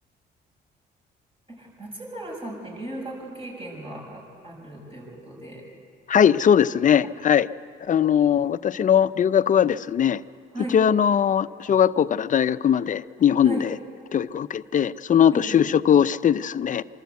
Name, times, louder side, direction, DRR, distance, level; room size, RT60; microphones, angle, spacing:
voice 1, 1.5-5.6 10.5-10.8 13.4-13.6 15.3-15.6, right 1 dB, 25° right, -2 dB, 6.6 m, -36 dB
voice 2, 6.1-7.5 7.8-10.2 10.7-13.8 14.1-16.8, left 8 dB, 40° left, 15 dB, 0.5 m, -20 dB
25.5 x 13.0 x 8.2 m, 2.4 s
cardioid pair, 90°, 20 cm